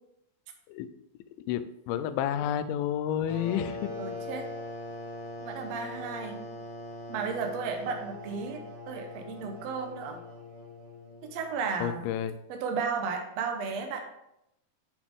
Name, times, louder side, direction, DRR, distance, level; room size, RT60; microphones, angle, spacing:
voice 1, 1.5-3.9 11.8-12.3, left 10 dB, 80° left, 12 dB, 2.2 m, -30 dB
sound 1, 3.3-11.7, left 2 dB, 60° left, 1.2 m, -41 dB
voice 2, 4.0-4.5 5.4-6.5 7.1-8.6 8.9-10.2 11.3-12.1 12.5-14.0, right 5 dB, 75° right, 3 dB, 1.5 m, -34 dB
7.3 x 6.0 x 3.6 m, 0.83 s
omnidirectional pair, 4.3 m